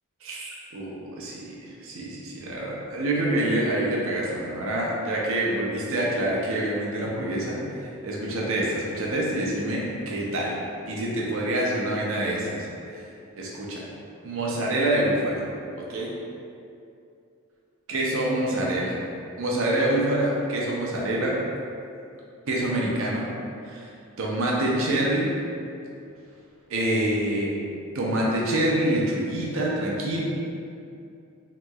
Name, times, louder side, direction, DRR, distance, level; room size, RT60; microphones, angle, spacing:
voice 1, 0.2-10.6 10.9-12.7 12.9-13.0 13.4-13.9 14.2-15.5 15.8-16.2 17.9-19.0 19.4-21.4 22.5-23.3 23.7-23.9 24.2-25.3 26.7-27.5 27.9-30.2, right 1 dB, 65° right, -4 dB, 0.5 m, -26 dB
2.9 x 2.7 x 2.3 m, 2.6 s
head